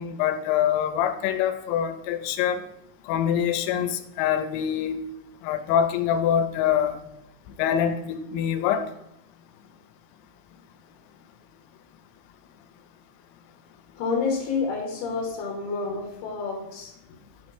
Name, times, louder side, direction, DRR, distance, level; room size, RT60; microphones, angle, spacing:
voice 1, 0.0-2.6 3.1-5.0 5.4-7.0 7.6-8.8, left 9 dB, 85° left, 9 dB, 2.9 m, -24 dB
voice 2, 14.0-16.9, left 4 dB, 70° left, -1 dB, 2.7 m, -29 dB
8.5 x 3.2 x 4.6 m, 0.85 s
omnidirectional pair, 5.2 m